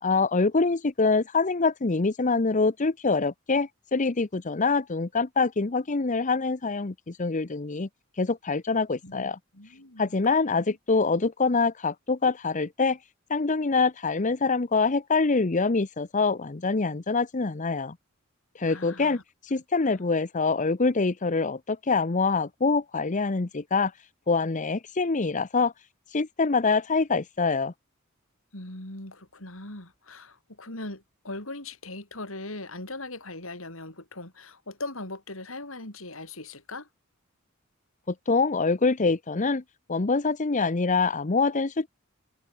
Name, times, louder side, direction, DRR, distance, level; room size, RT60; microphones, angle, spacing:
voice 1, 0.0-7.9 8.2-9.4 10.0-13.0 13.3-17.9 18.6-23.9 24.3-25.7 26.1-27.7 38.1-39.6 39.9-41.9, left 4 dB, 40° left, 0.8 m, -25 dB
voice 2, 9.0-10.0 18.7-19.2 19.9-20.0 28.5-36.9, left 2 dB, 80° left, 7.7 m, -40 dB
head